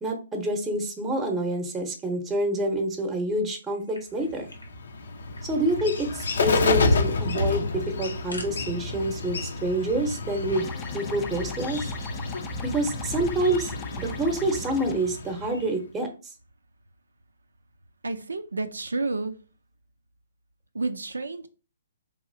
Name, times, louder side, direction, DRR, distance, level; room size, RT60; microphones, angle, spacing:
voice 1, 0.0-4.5 5.4-10.7 10.9-11.9 12.6-16.1, right 1 dB, 10° right, 0.8 m, -27 dB
sound 1, 3.6-4.7 5.0-5.1 5.3-5.9 6.2-6.3 6.6-6.8 7.8-8.5, left 2 dB, 90° left, 1.1 m, -45 dB
Bird, 4.3-15.8, left 3 dB, 65° left, 0.6 m, -29 dB
sound 2, 10.6-14.9, left 6 dB, 15° left, 0.4 m, -41 dB
voice 2, 18.0-19.3 20.7-21.5, right 3 dB, 80° right, 0.4 m, -30 dB
4.6 x 2.9 x 2.6 m
figure-of-eight pair, 130°, 0 cm